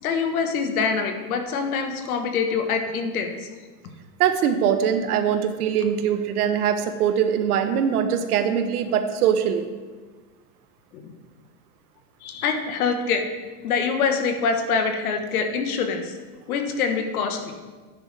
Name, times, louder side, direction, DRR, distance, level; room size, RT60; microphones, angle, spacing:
voice 1, 0.0-3.5 10.9-11.1 12.2-13.2 13.6-16.2 16.5-17.5, left 5 dB, 70° left, 5 dB, 1.5 m, -25 dB
voice 2, 4.2-9.7, right 8 dB, 85° right, 8 dB, 1.2 m, -22 dB
12.5 x 9.8 x 3.5 m, 1.4 s
supercardioid pair, 180°, 44 cm